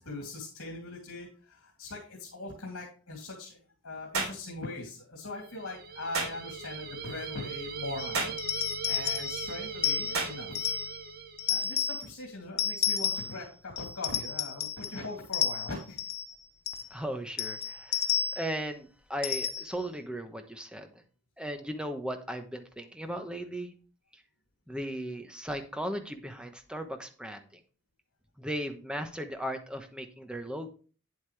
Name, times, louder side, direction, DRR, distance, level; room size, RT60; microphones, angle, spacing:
voice 1, 0.0-3.6 3.8-10.6 11.5-16.0, left 2 dB, 75° left, -2 dB, 2.7 m, -41 dB
sound 1, 4.1-4.4 6.1-6.4 8.1-8.4 10.1-10.4, right 3 dB, 75° right, 3.6 m, -31 dB
sound 2, 5.4-11.8, right 5 dB, 45° right, 0.8 m, -40 dB
sound 3, 8.0-11.0 11.4-12.1 12.6-13.4 13.8-15.0 15.3-16.3 16.7-16.9 17.4-18.6 19.2-19.8, left 8 dB, 50° left, 0.8 m, -31 dB
voice 2, 16.9-18.1 18.3-20.9 21.4-23.7 24.7-27.5 28.4-30.7, equal, 5° right, 6 dB, 1.0 m, -37 dB
9.5 x 8.1 x 3.3 m, 0.37 s
head